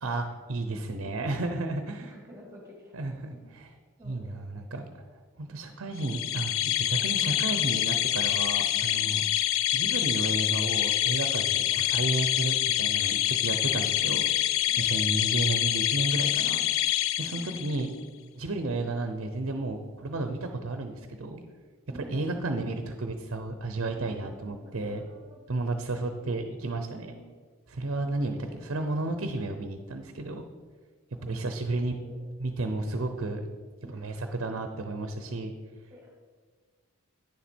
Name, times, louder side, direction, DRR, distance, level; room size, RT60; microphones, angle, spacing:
voice 1, 0.0-2.0 2.9-3.7 4.0-4.9 5.4-9.2 9.7-14.3 14.8-16.6 17.2-17.9 18.3-21.4 21.9-25.0 25.5-27.1 27.7-30.5 31.2-32.0 32.4-33.4 33.9-35.5, right 2 dB, 65° right, 6 dB, 0.7 m, -32 dB
voice 2, 0.7-1.3 1.9-3.4 4.0-4.9 5.5-5.8 8.7-9.4 14.7-15.9 16.4-16.8 17.3-18.0 21.9-22.9 23.8-26.3 26.6-27.2 27.8-29.1 31.2-31.4 31.7-32.3 33.8-34.3 35.9-36.1, equal, 10° right, -1 dB, 2.0 m, -51 dB
sound 1, 6.0-17.9, left 13 dB, 65° left, 0.4 m, -26 dB
9.7 x 7.2 x 4.4 m, 1.5 s
head